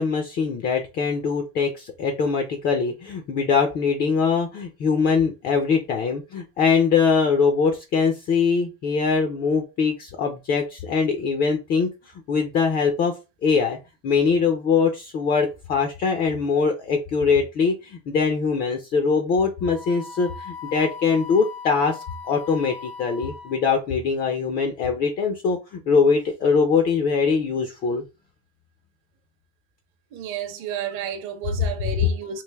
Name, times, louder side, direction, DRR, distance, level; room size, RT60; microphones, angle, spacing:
voice 1, 0.0-11.9 12.3-13.2 13.4-13.8 14.0-28.0, left 5 dB, 30° left, 0.4 m, -22 dB
Wind instrument woodwind instrument, 19.6-23.8, left 6 dB, 80° left, 1.7 m, -39 dB
voice 2, 30.1-32.4, right 8 dB, 40° right, 0.7 m, -31 dB
3.2 x 2.4 x 3.4 m
cardioid pair, 160°, 31 cm